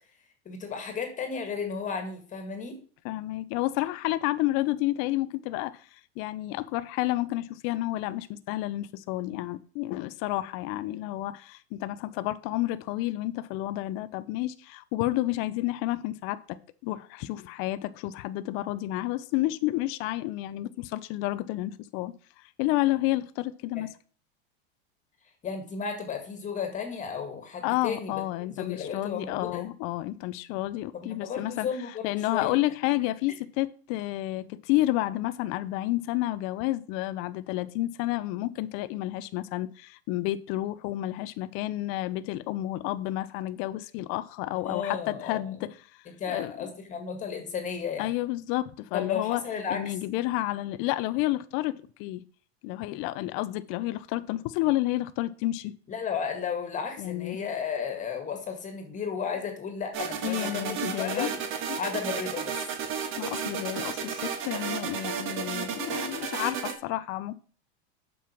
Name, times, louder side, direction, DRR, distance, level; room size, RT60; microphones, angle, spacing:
voice 1, 0.5-2.8 23.7-23.8 25.4-29.6 30.9-32.6 44.5-45.6 46.1-48.1 48.9-49.9 55.9-61.4 61.8-62.6, left 6 dB, 20° left, 1.8 m, -34 dB
voice 2, 3.0-5.8 6.2-22.1 22.6-23.9 27.6-31.7 32.0-45.7 46.3-46.7 48.0-49.4 49.7-52.2 52.6-55.7 57.0-57.4 60.2-61.3 61.7-61.8 63.2-67.4, left 16 dB, 40° left, 0.5 m, -30 dB
sound 1, 59.9-66.7, right 7 dB, 40° right, 1.6 m, -33 dB
7.6 x 5.4 x 5.9 m
supercardioid pair, 140°, 33 cm